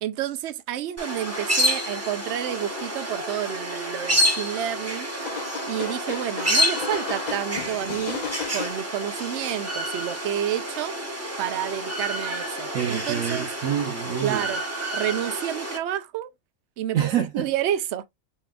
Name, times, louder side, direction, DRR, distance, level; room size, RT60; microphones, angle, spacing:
voice 1, 0.0-5.1 5.6-8.3 8.5-10.9 11.4-13.5 14.2-14.6 14.9-16.3 16.8-17.0 17.4-18.0, right 11 dB, 65° right, 0.8 m, -29 dB
sound 1, 1.0-15.8, equal, 10° right, 1.0 m, -29 dB
sound 2, 1.9-2.0 2.5-2.9 4.0-4.1 5.2-8.7, left 6 dB, 40° left, 0.7 m, -35 dB
voice 2, 12.7-14.5 16.9-17.5, right 9 dB, 85° right, 1.1 m, -27 dB
4.1 x 3.7 x 2.3 m
omnidirectional pair, 1.4 m